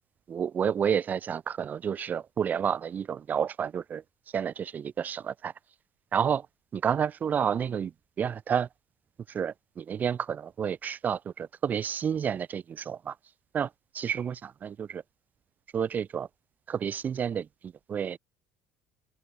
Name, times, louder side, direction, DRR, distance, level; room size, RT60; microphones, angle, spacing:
voice 1, 0.3-4.0 4.3-5.5 6.1-6.5 6.7-7.9 8.2-8.7 9.3-13.1 13.5-13.7 13.9-14.3 14.6-15.0 15.7-16.3 16.7-18.2, right 8 dB, 35° right, 1.6 m, -30 dB
open air
figure-of-eight pair, 60°, 5 cm